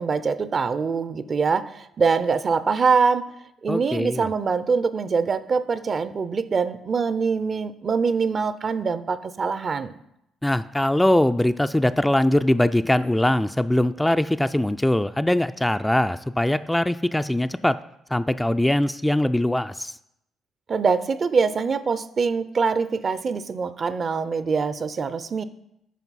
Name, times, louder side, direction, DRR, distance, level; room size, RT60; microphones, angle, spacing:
voice 1, 0.0-3.2 3.6-10.0 20.7-25.4, right 5 dB, 45° right, 14 dB, 0.5 m, -24 dB
voice 2, 3.7-4.3 10.4-17.8 18.1-20.0, left 1 dB, 10° left, 11 dB, 0.3 m, -22 dB
9.2 x 5.2 x 4.1 m, 0.79 s
hypercardioid pair, 55°, 0 cm